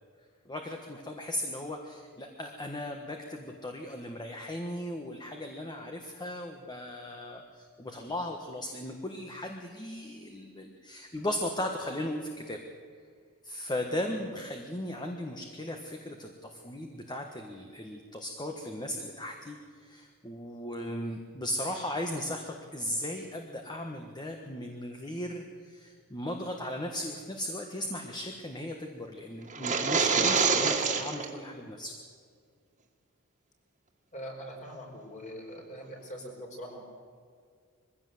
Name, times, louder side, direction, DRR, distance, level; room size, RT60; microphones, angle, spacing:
voice 1, 0.4-12.6 13.4-31.9, left 1 dB, 20° left, 3 dB, 1.4 m, -37 dB
sound 1, 29.5-31.3, right 5 dB, 35° right, 2.1 m, -26 dB
voice 2, 34.1-36.8, equal, 35° left, 0 dB, 4.8 m, -42 dB
22.0 x 16.0 x 7.9 m, 2.1 s
head